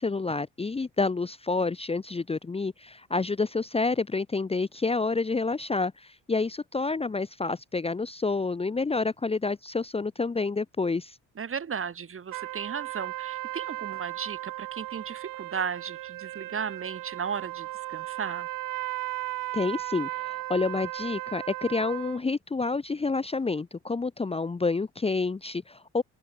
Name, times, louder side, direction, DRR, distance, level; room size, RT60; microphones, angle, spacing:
voice 1, 0.0-11.2 19.5-26.0, left 3 dB, 20° left, 0.9 m, -29 dB
voice 2, 11.4-18.5, right 7 dB, 40° right, 2.8 m, -35 dB
sound 1, 12.3-22.2, right 17 dB, 85° right, 1.6 m, -36 dB
open air
cardioid pair, 85°, 32 cm